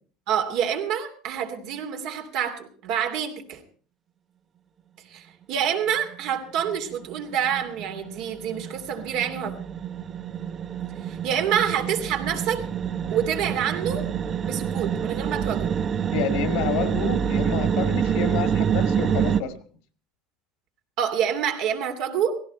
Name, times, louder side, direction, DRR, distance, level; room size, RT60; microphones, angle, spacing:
voice 1, 0.3-3.6 5.1-9.5 11.0-12.6 13.1-14.1 14.4-15.7 21.0-22.4, right 8 dB, 60° right, 2.7 m, -27 dB
sound 1, 6.1-6.3 6.6-19.4, right 8 dB, 30° right, 0.8 m, -27 dB
voice 2, 16.1-19.5, left 7 dB, 75° left, 2.0 m, -29 dB
17.0 x 16.5 x 4.3 m
cardioid pair, 145°, 0 cm